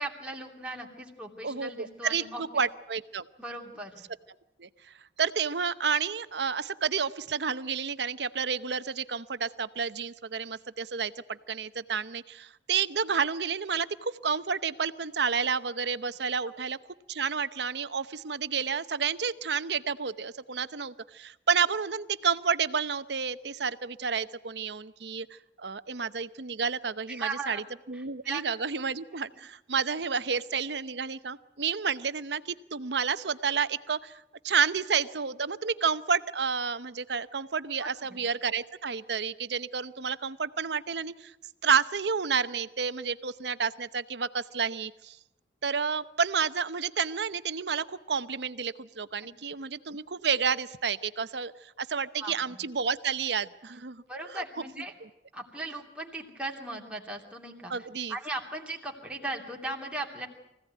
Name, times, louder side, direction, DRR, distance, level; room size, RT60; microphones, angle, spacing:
voice 1, 0.0-2.4 3.4-4.0 27.1-27.6 27.9-28.4 37.8-37.9 52.2-52.3 54.1-54.9 55.3-60.3, right 2 dB, 5° right, -1 dB, 2.8 m, -38 dB
voice 2, 1.4-3.3 4.6-16.8 17.1-41.3 41.6-45.2 45.6-54.0 54.3-54.4 55.0-55.1 57.7-58.2, right 6 dB, 75° right, 13 dB, 0.9 m, -30 dB
24.0 x 16.5 x 9.3 m, 0.87 s
head